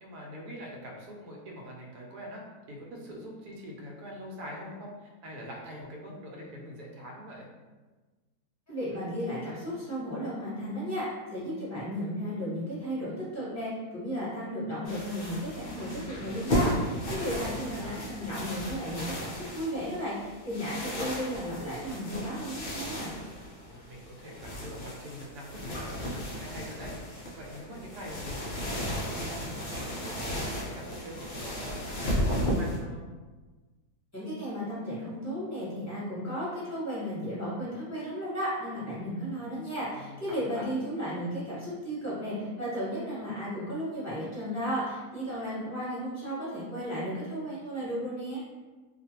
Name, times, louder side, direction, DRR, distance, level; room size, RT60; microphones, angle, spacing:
voice 1, 0.0-2.4 2.7-7.5 17.2-18.0 23.6-33.0 39.9-40.7, equal, 80° right, -1 dB, 1.1 m, -44 dB
voice 2, 8.7-23.1 34.1-48.4, equal, 15° left, -10 dB, 0.8 m, -34 dB
sound 1, 14.8-32.8, equal, 60° left, 0.5 m, -34 dB
2.4 x 2.4 x 2.8 m, 1.3 s
omnidirectional pair, 1.7 m